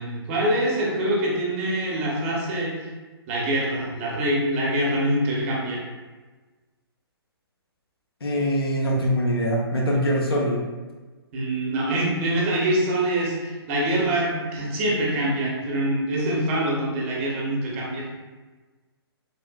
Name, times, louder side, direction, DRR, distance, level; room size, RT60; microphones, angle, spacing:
voice 1, 0.0-2.9 3.3-5.8 11.3-18.1, right 1 dB, 30° right, -3 dB, 0.7 m, -25 dB
voice 2, 8.2-10.6, equal, 65° left, -1 dB, 0.7 m, -23 dB
3.3 x 2.4 x 2.2 m, 1.3 s
figure-of-eight pair, 130°, 13 cm